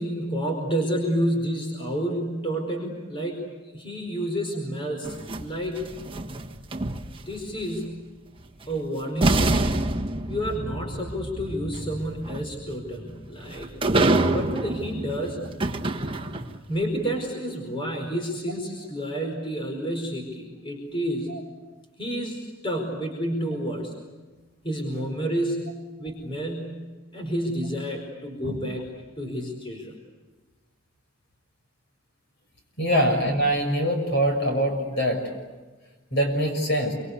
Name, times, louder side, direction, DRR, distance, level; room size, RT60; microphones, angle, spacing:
voice 1, 0.0-5.8 7.1-8.0 8.7-9.7 10.3-15.4 16.7-21.4 22.0-23.9 24.6-26.8 27.1-28.8 29.2-29.9, equal, 25° left, 2 dB, 4.7 m, -30 dB
sound 1, 5.0-7.4 8.6-8.7 9.2-16.7, right 2 dB, 25° right, 1.4 m, -27 dB
voice 2, 32.8-35.2 36.1-36.9, equal, 55° left, 4 dB, 6.6 m, -23 dB
27.5 x 25.5 x 8.3 m, 1.2 s
head